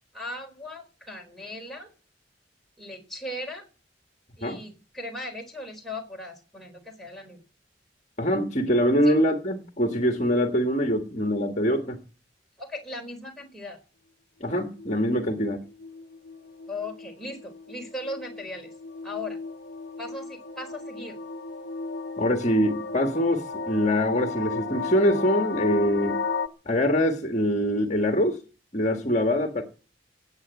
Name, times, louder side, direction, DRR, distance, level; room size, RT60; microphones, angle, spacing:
voice 1, 0.1-1.9 2.8-3.7 4.4-7.4 9.0-9.1 12.6-13.8 16.7-18.7 19.0-19.4 20.0-21.2, left 1 dB, ahead, 4.5 m, -38 dB
voice 2, 8.2-12.0 14.4-15.6 22.2-26.2 26.7-28.4 28.7-29.6, equal, 40° left, 1.7 m, -24 dB
sound 1, 14.5-26.5, left 4 dB, 60° left, 1.2 m, -35 dB
17.5 x 8.6 x 8.2 m
head